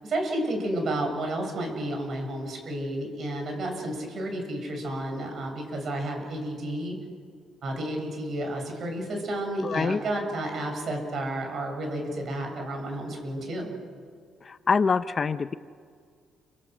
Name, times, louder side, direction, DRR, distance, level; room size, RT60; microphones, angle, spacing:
voice 1, 0.0-7.0 7.6-13.7, right 1 dB, 55° right, 3 dB, 7.4 m, -31 dB
voice 2, 9.6-10.0 14.4-15.5, left 5 dB, 35° left, 12 dB, 0.7 m, -25 dB
29.5 x 25.5 x 6.4 m, 2.1 s
cardioid pair, 100°, 0 cm